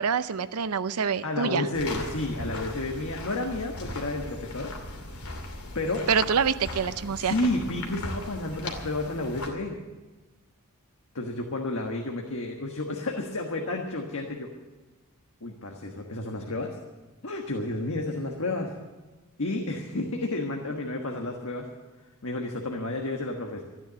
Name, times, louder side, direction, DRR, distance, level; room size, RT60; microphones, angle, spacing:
voice 1, 0.0-1.7 6.1-7.3, right 6 dB, 80° right, 13 dB, 0.6 m, -26 dB
voice 2, 1.2-4.7 5.7-6.1 7.2-9.8 11.1-14.5 15.4-16.8 17.2-18.7 19.4-21.7 22.2-23.6, left 2 dB, 65° left, 2 dB, 1.4 m, -31 dB
sound 1, 1.7-9.5, left 2 dB, 85° left, 2.7 m, -38 dB
14.0 x 10.0 x 8.4 m, 1.2 s
head